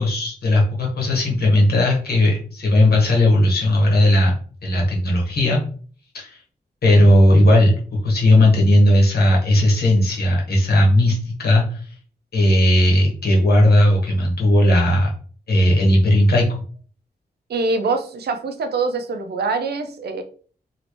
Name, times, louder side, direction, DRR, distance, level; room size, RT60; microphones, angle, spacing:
voice 1, 0.0-4.3 4.6-5.6 6.1-6.4 6.8-11.9 12.3-15.1 15.5-16.6, left 1 dB, 75° left, -1 dB, 1.3 m, -16 dB
voice 2, 17.5-20.2, right 3 dB, 85° right, 7 dB, 0.5 m, -24 dB
3.1 x 2.8 x 3.0 m, 0.43 s
wide cardioid pair, 145°, 16 cm